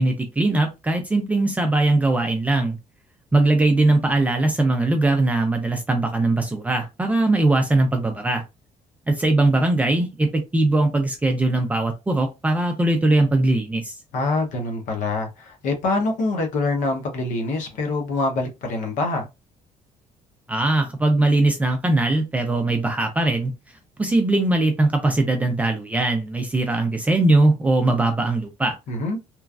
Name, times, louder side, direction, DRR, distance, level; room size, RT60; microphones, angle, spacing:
voice 1, 0.0-2.8 3.3-8.4 9.1-13.9 20.5-23.5 24.0-28.7, right 2 dB, 10° right, 0.4 m, -20 dB
voice 2, 14.1-19.3 28.9-29.2, left 2 dB, 75° left, 0.8 m, -25 dB
3.0 x 2.4 x 2.3 m
cardioid pair, 170°, 13 cm